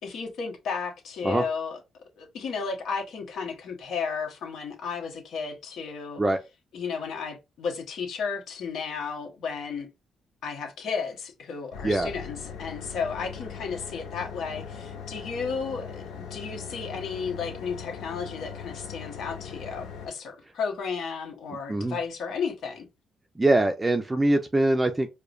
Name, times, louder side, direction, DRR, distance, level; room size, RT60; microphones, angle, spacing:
voice 1, 0.0-1.8 2.2-6.2 6.7-9.9 10.4-16.0 16.3-22.9, left 5 dB, 70° left, 1.2 m, -33 dB
sound 1, 11.7-20.1, left 6 dB, 90° left, 0.7 m, -40 dB
voice 2, 23.4-25.1, right 2 dB, 20° right, 0.5 m, -23 dB
4.7 x 2.2 x 2.6 m
cardioid pair, 90°, 0 cm